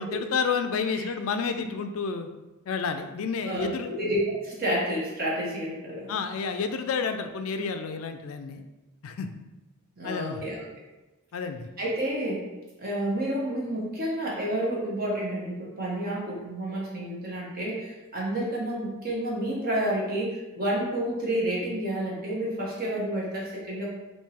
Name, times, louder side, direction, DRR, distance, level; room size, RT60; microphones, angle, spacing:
voice 1, 0.0-2.3 2.7-3.9 6.1-8.6 9.0-9.3 10.0-10.4 11.3-11.7, left 5 dB, 70° left, 7 dB, 0.4 m, -30 dB
voice 2, 3.5-6.2 10.0-10.6 11.8-12.4 12.8-23.9, right 1 dB, 45° right, -4 dB, 1.2 m, -30 dB
3.6 x 2.7 x 4.3 m, 1.1 s
head